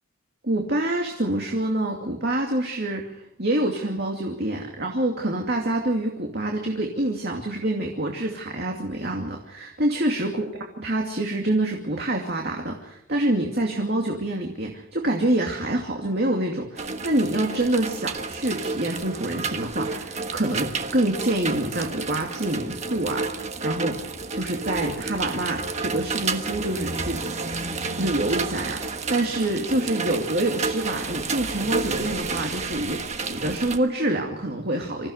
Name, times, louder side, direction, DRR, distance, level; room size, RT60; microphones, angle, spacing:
voice 1, 0.4-24.0 24.3-27.5 28.0-35.1, right 1 dB, 50° right, 1 dB, 2.5 m, -26 dB
sound 1, 16.8-33.8, right 4 dB, 35° right, 1.4 m, -30 dB
26.5 x 15.5 x 6.6 m, 0.77 s
head